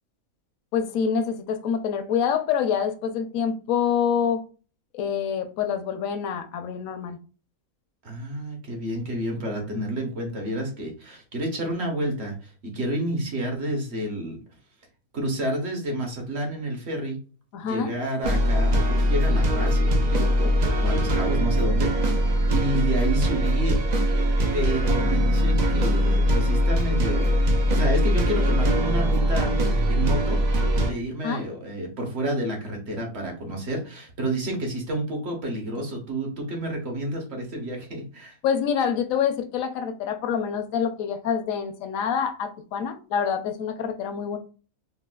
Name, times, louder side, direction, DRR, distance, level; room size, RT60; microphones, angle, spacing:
voice 1, 0.7-4.4 4.9-7.2 17.5-17.9 31.2-31.4 38.4-44.4, left 7 dB, 70° left, 8 dB, 0.9 m, -26 dB
voice 2, 8.0-14.4 15.1-17.2 17.6-23.8 24.5-27.4 27.7-29.5 29.9-30.4 30.7-38.4, right 1 dB, 50° right, 2 dB, 1.0 m, -30 dB
sound 1, 18.2-30.9, equal, 75° right, 0.4 m, -21 dB
4.0 x 2.3 x 2.2 m, 0.36 s
omnidirectional pair, 1.5 m